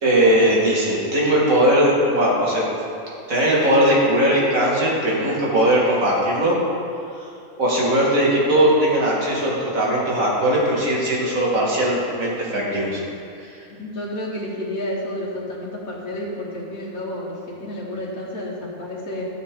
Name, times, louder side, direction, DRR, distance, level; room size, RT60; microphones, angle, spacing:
voice 1, 0.0-2.7 3.3-6.6 7.6-13.0 13.4-13.5, right 1 dB, 70° right, -5 dB, 2.3 m, -19 dB
voice 2, 13.8-19.2, left 1 dB, 75° left, -6 dB, 1.8 m, -30 dB
11.5 x 8.2 x 3.8 m, 2.5 s
omnidirectional pair, 1.5 m